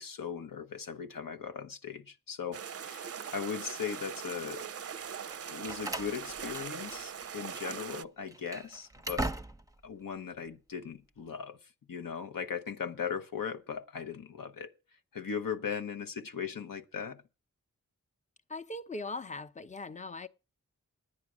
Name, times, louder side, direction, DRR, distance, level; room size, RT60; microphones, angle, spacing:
voice 1, 0.0-4.7 5.5-9.3 9.8-14.7 15.1-17.2, left 7 dB, 80° left, 0.9 m, -38 dB
sound 1, 2.5-8.0, right 7 dB, 45° right, 0.5 m, -41 dB
Slam, 5.3-7.3 7.6-7.7 8.3-9.8, right 2 dB, 10° right, 0.7 m, -39 dB
voice 2, 18.5-20.3, left 2 dB, 20° left, 0.8 m, -40 dB
9.9 x 9.2 x 6.1 m
cardioid pair, 50°, 33 cm